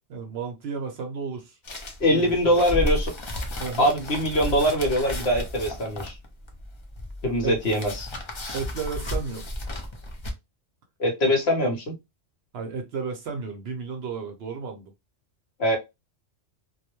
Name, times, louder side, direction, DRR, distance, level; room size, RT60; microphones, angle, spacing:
voice 1, 0.1-1.6 2.1-2.5 3.6-3.9 7.4-7.6 8.5-9.5 11.2-11.3 12.5-14.9, right 5 dB, 65° right, 0.7 m, -33 dB
sound 1, 1.6-10.3, left 1 dB, 40° left, 0.4 m, -33 dB
voice 2, 2.0-3.1 3.8-6.2 7.2-8.1 11.0-11.9 15.6-15.8, equal, 60° left, 1.0 m, -23 dB
2.3 x 2.1 x 2.9 m
omnidirectional pair, 1.3 m